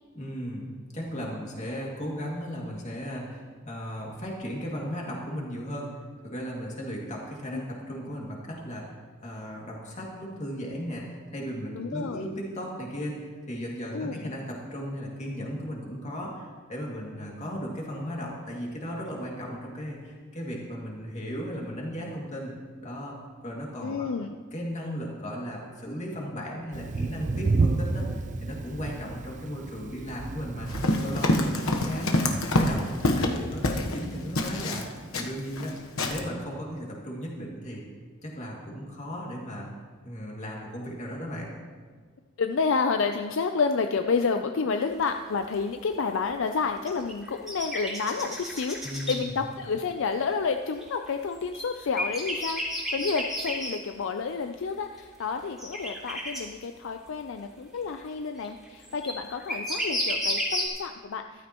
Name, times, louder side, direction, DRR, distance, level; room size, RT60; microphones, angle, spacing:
voice 1, 0.1-5.9 6.2-8.9 9.2-22.5 22.8-23.2 23.4-24.1 24.5-30.7 31.0-32.3 32.5-34.9 35.2-35.8 36.0-37.8 38.2-39.7 40.0-41.5 48.8-49.4, equal, 35° left, -2 dB, 2.3 m, -36 dB
voice 2, 11.7-12.2 13.9-14.3 23.8-24.4 42.4-61.5, left 5 dB, 65° left, 6 dB, 0.5 m, -30 dB
Thunder, 26.7-33.5, right 3 dB, 35° right, 0.4 m, -31 dB
Run, 30.7-34.0 34.4-35.7 36.0-36.2, left 1 dB, 90° left, 1.1 m, -26 dB
sound 1, 44.9-45.0 45.5-45.6 46.7-49.2 50.8-53.7 55.0-55.1 55.6-56.4 58.4-60.7, equal, ahead, 2.8 m, -31 dB
14.0 x 12.5 x 3.0 m, 1.5 s
head